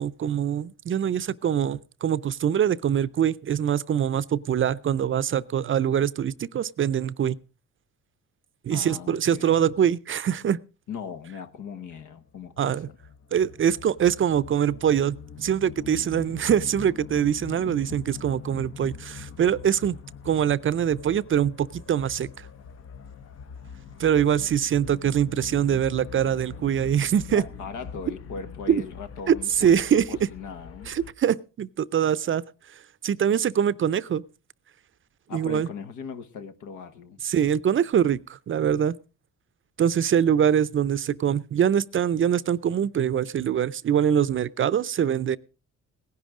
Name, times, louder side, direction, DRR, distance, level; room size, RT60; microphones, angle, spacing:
voice 1, 0.0-7.4 8.6-10.6 12.6-12.9 13.3-20.0 20.2-22.5 24.0-27.4 28.7-28.8 29.3-30.0 30.9-32.4 33.0-34.2 35.3-35.7 37.2-38.9 39.8-45.4, right 9 dB, 45° right, 0.5 m, -23 dB
voice 2, 8.7-9.7 10.9-13.0 27.3-29.8 30.1-31.0 35.3-37.2, left 6 dB, 80° left, 1.3 m, -39 dB
sound 1, 11.9-31.1, left 6 dB, 50° left, 0.8 m, -43 dB
18.0 x 10.5 x 3.7 m
cardioid pair, 90°, 30 cm